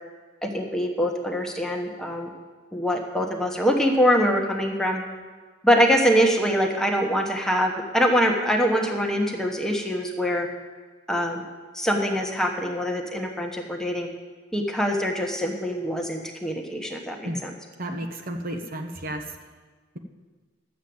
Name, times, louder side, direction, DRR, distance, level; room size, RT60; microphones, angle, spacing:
voice 1, 0.4-2.3 2.7-5.0 5.6-10.5 11.1-11.4 11.7-14.1 14.5-17.5, equal, 5° left, 1 dB, 1.2 m, -24 dB
voice 2, 17.8-19.3, right 1 dB, 50° right, 5 dB, 1.1 m, -32 dB
12.0 x 7.4 x 7.9 m, 1.4 s
head